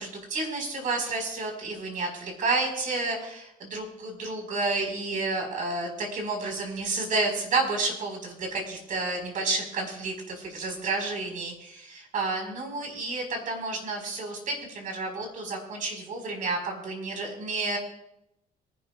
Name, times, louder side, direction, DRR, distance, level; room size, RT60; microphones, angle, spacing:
voice 1, 0.0-17.8, right 3 dB, 50° right, 2 dB, 4.6 m, -30 dB
26.0 x 11.5 x 2.4 m, 0.83 s
cardioid pair, 110°, 17 cm